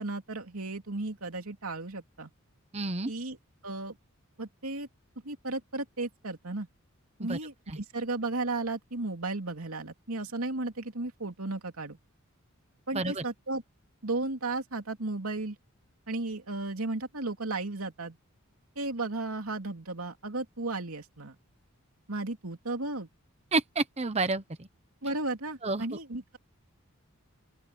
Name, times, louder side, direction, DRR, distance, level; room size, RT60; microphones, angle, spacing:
voice 1, 0.0-2.3 3.1-3.4 3.6-4.0 4.4-4.9 5.2-6.7 7.2-12.0 12.9-13.6 14.0-15.6 16.1-18.2 18.8-21.4 22.1-23.1 25.0-26.4, right 2 dB, 90° right, 2.9 m, -34 dB
voice 2, 2.7-3.1 7.2-7.4 7.7-7.8 12.9-13.2 23.5-24.7 25.6-25.8, right 3 dB, 30° right, 1.0 m, -30 dB
open air
head